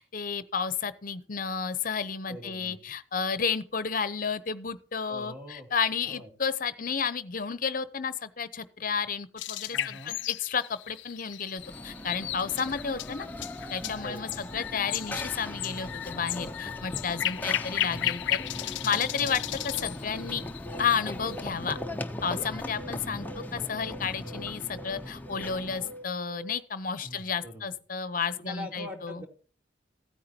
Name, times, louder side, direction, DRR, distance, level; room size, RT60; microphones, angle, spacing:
voice 1, 0.0-13.3 13.7-18.4 18.8-20.4 20.8-21.8 22.2-23.3 23.5-29.2, left 6 dB, 45° left, 0.8 m, -32 dB
voice 2, 2.3-2.8 5.1-5.7 6.0-6.3 9.7-10.2 12.6-12.8 14.0-14.4 17.4-17.6 22.5-22.8 27.0-27.7 28.4-29.3, equal, 10° right, 2.5 m, -44 dB
predawn nightingale - cut, 9.4-21.4, left 13 dB, 75° left, 0.4 m, -35 dB
Run / Train, 11.6-26.0, left 1 dB, 10° left, 0.7 m, -39 dB
sound 1, 19.6-26.6, right 1 dB, 75° right, 4.6 m, -45 dB
15.5 x 9.4 x 2.9 m
head